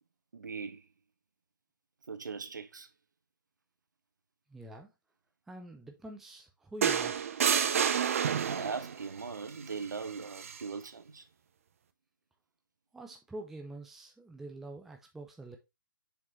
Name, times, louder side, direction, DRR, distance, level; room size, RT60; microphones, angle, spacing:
voice 1, 0.3-0.9 2.1-2.9 8.4-11.3, right 5 dB, 60° right, 1.0 m, -40 dB
voice 2, 4.5-4.9 5.5-7.2 12.9-15.6, right 2 dB, 5° right, 0.5 m, -46 dB
sound 1, 6.8-9.0 10.4-10.6, right 7 dB, 40° right, 0.7 m, -29 dB
6.9 x 5.2 x 3.1 m
figure-of-eight pair, 135°, 11 cm